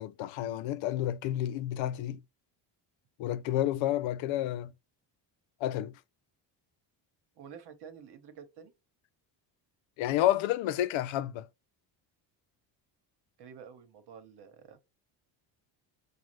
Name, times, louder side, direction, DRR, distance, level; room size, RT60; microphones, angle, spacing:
voice 1, 0.0-2.2 3.2-4.7 5.6-5.9 10.0-11.5, left 13 dB, 85° left, 0.5 m, -30 dB
voice 2, 7.4-8.7 13.4-14.8, right 7 dB, 60° right, 1.1 m, -49 dB
6.3 x 2.4 x 3.1 m
cardioid pair, 160°, 45 cm